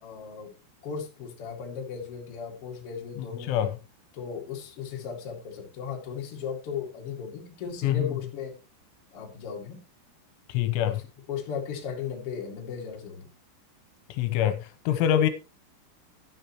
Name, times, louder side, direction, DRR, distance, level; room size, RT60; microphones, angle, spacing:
voice 1, 0.0-0.5 0.8-3.5 4.1-8.6 9.1-9.8 10.9-11.0 11.3-13.3, left 6 dB, 40° left, 2.2 m, -36 dB
voice 2, 3.2-3.8 7.8-8.2 10.5-11.0 14.1-15.3, left 11 dB, 80° left, 3.2 m, -25 dB
11.5 x 10.0 x 3.0 m
omnidirectional pair, 5.5 m